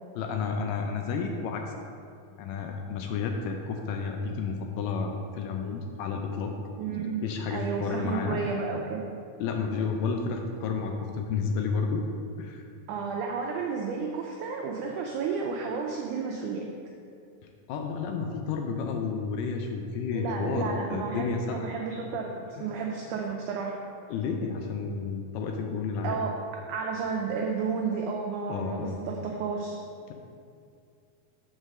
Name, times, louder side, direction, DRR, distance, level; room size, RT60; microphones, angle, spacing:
voice 1, 0.2-1.7 2.4-6.5 7.2-8.4 9.4-12.0 12.4-12.7 17.7-21.7 22.6-22.7 24.1-26.2 28.5-29.0, left 5 dB, 80° left, 3 dB, 2.0 m, -31 dB
voice 2, 6.8-7.2 7.5-9.0 12.9-16.6 20.1-23.8 26.0-26.3 26.7-29.8, right 5 dB, 90° right, 0 dB, 1.7 m, -32 dB
6.3 x 4.0 x 6.3 m, 2.4 s
omnidirectional pair, 4.1 m